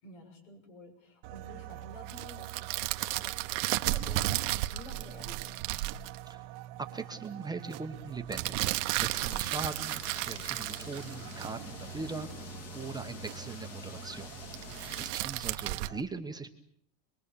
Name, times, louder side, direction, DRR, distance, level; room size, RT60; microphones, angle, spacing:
voice 1, 0.0-5.6 9.3-9.5 14.6-15.1, left 1 dB, 70° left, 6 dB, 7.2 m, -51 dB
sound 1, 1.2-16.0, right 12 dB, 55° right, 1.2 m, -46 dB
sound 2, 2.1-6.2 8.3-11.5 14.5-15.9, right 18 dB, 70° right, 1.2 m, -33 dB
voice 2, 6.3-8.7 9.0-14.3 15.0-16.5, right 4 dB, 10° right, 4 dB, 1.1 m, -41 dB
sound 3, 9.1-15.1, left 4 dB, 40° left, 3.1 m, -47 dB
26.5 x 21.5 x 7.0 m, 0.66 s
supercardioid pair, 150°, 39 cm